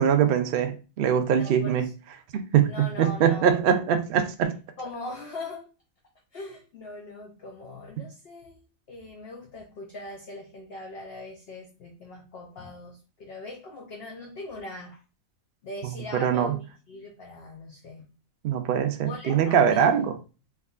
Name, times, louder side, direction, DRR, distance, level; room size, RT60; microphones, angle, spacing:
voice 1, 0.0-1.8 2.3-4.5 16.1-16.6 18.4-20.2, right 8 dB, 70° right, 0.5 m, -22 dB
voice 2, 1.3-1.9 2.7-3.5 4.8-5.7 6.3-8.6 8.9-15.0 15.6-18.0 19.0-20.0, left 2 dB, 60° left, 0.7 m, -41 dB
3.5 x 2.7 x 2.3 m
omnidirectional pair, 1.5 m